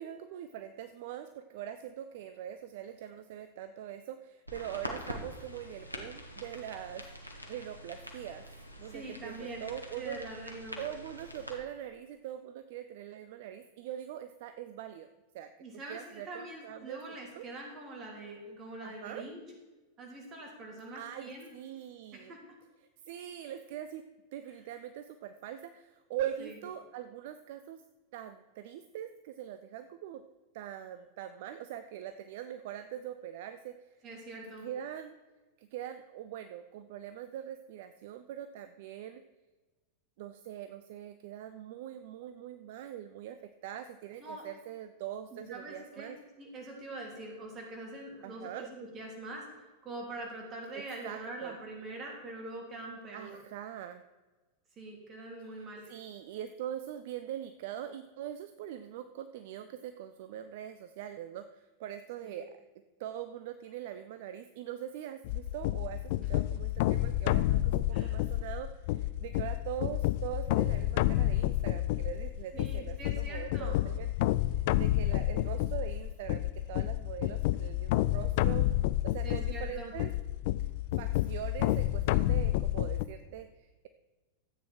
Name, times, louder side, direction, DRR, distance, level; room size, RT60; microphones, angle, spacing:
voice 1, 0.0-8.5 8.8-10.2 10.8-15.1 15.3-15.5 15.9-17.0 17.3-17.5 18.8-19.2 20.9-22.3 23.1-24.0 24.3-27.8 28.1-30.2 30.5-33.8 34.6-35.2 35.6-39.2 40.2-46.2 48.2-48.7 50.7-51.6 53.1-54.0 55.5-62.5 63.0-78.7 79.0-80.1 81.0-83.9, right 10 dB, 50° right, 10 dB, 0.5 m, -42 dB
sound 1, 4.5-11.6, equal, 90° right, 1.5 m, -45 dB
voice 2, 8.9-9.6 9.9-10.8 15.6-19.4 20.0-21.5 22.1-22.4 26.4-26.6 34.0-34.7 44.2-44.5 45.3-46.1 46.4-49.5 49.8-53.4 54.8-55.8 62.2-62.4 67.9-68.2 72.5-73.8 79.2-79.9, right 2 dB, 30° right, 0 dB, 3.3 m, -44 dB
sound 2, 65.2-83.1, left 15 dB, 50° left, 0.4 m, -30 dB
13.5 x 8.7 x 4.5 m, 1.2 s
figure-of-eight pair, 90°, 0 cm